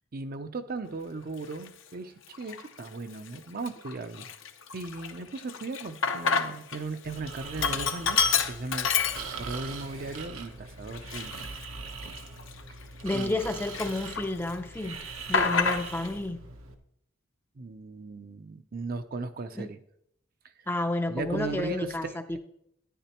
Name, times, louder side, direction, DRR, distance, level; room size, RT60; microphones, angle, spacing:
voice 1, 0.1-4.3 4.7-8.2 8.5-11.3 13.1-13.3 17.6-19.8 21.1-22.4, right 3 dB, 45° right, 0.5 m, -37 dB
Sink (filling or washing), 1.5-1.7 2.3-2.9 3.3-3.4 3.7-6.8 7.1-9.7 10.1-10.2 10.9-13.4 13.7-14.5 14.8-16.1, left 6 dB, 65° left, 0.7 m, -29 dB
Breathing, 7.0-16.7, right 4 dB, 80° right, 1.0 m, -42 dB
voice 2, 13.0-15.0 15.3-16.4 19.6-19.7 20.7-22.4, left 2 dB, 10° left, 0.5 m, -31 dB
10.0 x 10.0 x 2.9 m
head